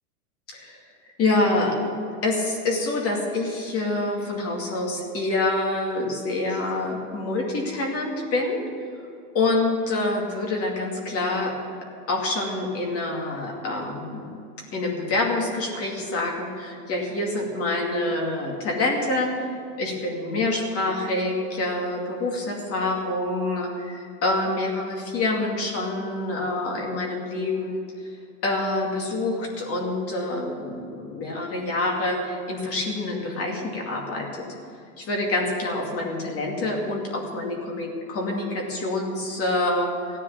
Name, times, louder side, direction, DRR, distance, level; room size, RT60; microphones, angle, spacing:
voice 1, 0.5-0.8 1.2-1.7 2.2-8.6 9.3-11.5 12.1-14.4 14.7-19.3 19.8-27.8 28.4-34.4 35.0-39.9, left 2 dB, 30° left, 0 dB, 2.4 m, -26 dB
15.5 x 9.8 x 7.3 m, 2.5 s
supercardioid pair, 135°, 46 cm